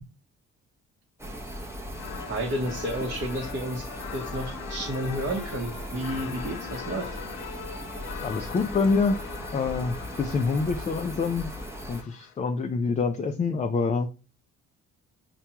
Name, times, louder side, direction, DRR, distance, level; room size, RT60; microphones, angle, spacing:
sound 1, 1.2-12.0, equal, 10° right, 0.7 m, -38 dB
sound 2, 1.9-12.3, left 9 dB, 80° left, 0.5 m, -41 dB
voice 1, 2.3-7.2, right 1 dB, 40° right, -1 dB, 0.8 m, -31 dB
voice 2, 8.2-9.3 9.5-11.5 11.9-14.1, left 4 dB, 25° left, 5 dB, 0.4 m, -26 dB
5.7 x 2.2 x 2.8 m, 0.32 s
cardioid pair, 90°, 30 cm